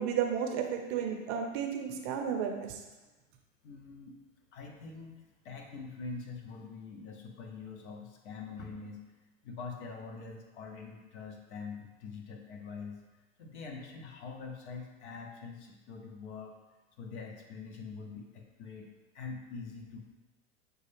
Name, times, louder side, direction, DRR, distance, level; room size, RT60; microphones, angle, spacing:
voice 1, 0.0-2.8, right 8 dB, 40° right, 3 dB, 0.6 m, -33 dB
voice 2, 3.6-4.1 4.5-9.0 9.4-13.0 13.4-16.5 17.0-18.9 19.1-20.0, left 4 dB, 60° left, 2 dB, 0.9 m, -44 dB
6.3 x 2.3 x 3.4 m, 1.1 s
hypercardioid pair, 95°, 40 cm